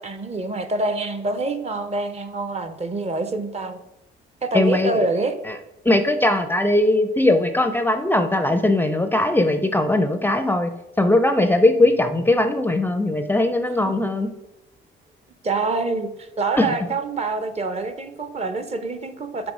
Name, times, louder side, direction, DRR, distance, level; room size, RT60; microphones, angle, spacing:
voice 1, 0.0-3.8 4.4-5.3 13.8-14.1 15.4-19.5, right 3 dB, 30° right, 10 dB, 0.6 m, -26 dB
voice 2, 4.5-5.1 5.8-10.7 11.0-14.3 16.6-16.7, left 2 dB, 10° left, 8 dB, 0.5 m, -19 dB
6.0 x 3.8 x 4.9 m, 0.89 s
cardioid pair, 90°, 20 cm